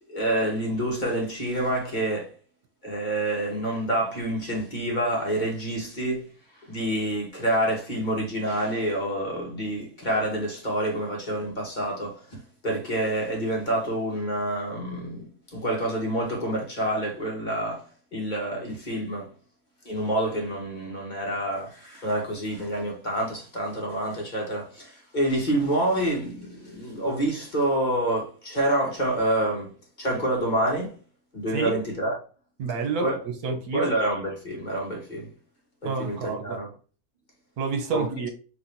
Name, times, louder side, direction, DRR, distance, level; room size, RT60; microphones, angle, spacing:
voice 1, 0.1-2.3 2.8-6.3 6.7-19.3 19.8-31.0 31.3-32.1 33.0-33.2 33.5-35.3 35.8-36.7 37.9-38.0, right 1 dB, 30° left, 1.5 m, -27 dB
voice 2, 32.6-33.9 35.8-36.6 37.6-38.3, right 5 dB, 75° right, 1.5 m, -29 dB
5.0 x 3.3 x 3.0 m
omnidirectional pair, 1.6 m